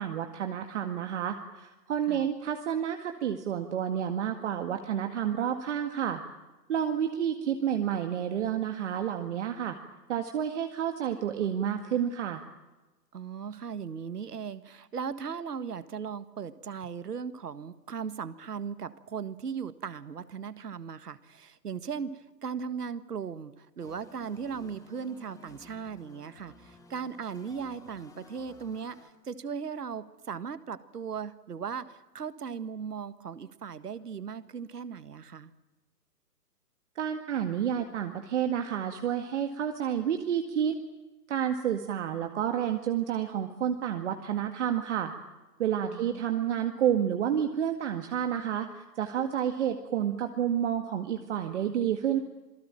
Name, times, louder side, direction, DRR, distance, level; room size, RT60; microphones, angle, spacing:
voice 1, 0.0-6.2 6.7-9.8 10.1-12.4 37.0-40.7 41.3-45.1 45.6-52.2, right 9 dB, 45° right, 6 dB, 2.0 m, -30 dB
voice 2, 13.1-35.5 45.9-46.2, right 6 dB, 70° right, 14 dB, 1.8 m, -38 dB
sound 1, 23.8-29.1, left 2 dB, 5° left, 2.8 m, -54 dB
27.0 x 19.0 x 9.0 m, 1.1 s
figure-of-eight pair, 130°, 48 cm